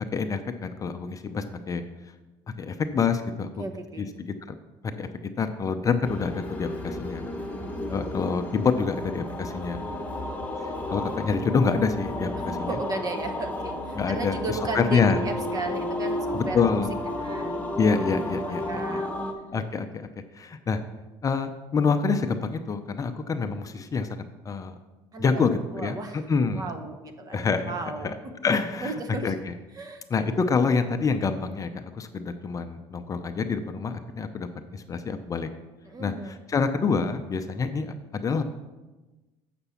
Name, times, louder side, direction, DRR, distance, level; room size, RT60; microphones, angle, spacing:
voice 1, 0.1-1.8 2.6-3.6 4.0-4.5 5.0-7.2 7.9-9.8 10.6-12.8 13.9-15.2 16.3-16.9 17.8-19.0 19.5-20.1 20.3-20.8 21.2-24.8 25.2-26.7 27.3-28.1 28.4-29.5 30.1-31.7 31.9-34.5 34.7-35.5 36.0-38.4, left 5 dB, 30° left, 8 dB, 0.6 m, -27 dB
voice 2, 3.6-4.1 7.8-8.2 12.4-16.8 17.2-17.7 18.4-19.3 25.1-26.2 26.5-28.1 28.8-29.3 29.8-30.0 35.9-36.4, right 3 dB, 35° right, 7 dB, 1.1 m, -35 dB
sound 1, 6.0-19.3, left 1 dB, 15° left, 1.3 m, -32 dB
7.9 x 6.0 x 5.7 m, 1.2 s
supercardioid pair, 95°, 11 cm